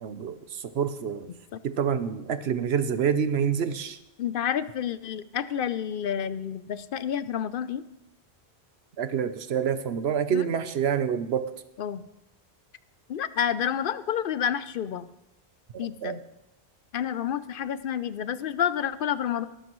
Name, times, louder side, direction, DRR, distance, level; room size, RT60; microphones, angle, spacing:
voice 1, 0.0-1.3 1.6-4.0 9.0-11.4 15.7-16.2, right 7 dB, 70° right, 11 dB, 1.0 m, -27 dB
voice 2, 4.2-7.8 10.3-10.5 11.8-12.0 13.1-15.1 15.8-16.2 16.9-19.5, left 9 dB, 60° left, 14 dB, 0.7 m, -29 dB
19.5 x 12.0 x 3.1 m, 0.88 s
omnidirectional pair, 1.1 m